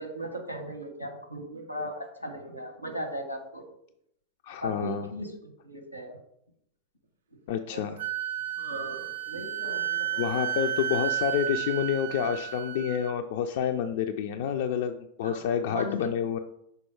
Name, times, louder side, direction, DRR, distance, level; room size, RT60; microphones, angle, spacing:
voice 1, 0.0-3.6 4.6-6.1 7.7-7.8 8.6-10.4 15.2-16.1, equal, 90° left, 5 dB, 1.1 m, -37 dB
voice 2, 4.4-5.1 7.5-8.0 10.2-16.4, left 8 dB, 55° left, 6 dB, 0.3 m, -29 dB
Wind instrument woodwind instrument, 8.0-13.1, right 11 dB, 60° right, 0.4 m, -32 dB
5.4 x 4.1 x 4.7 m, 0.75 s
figure-of-eight pair, 90°, 0 cm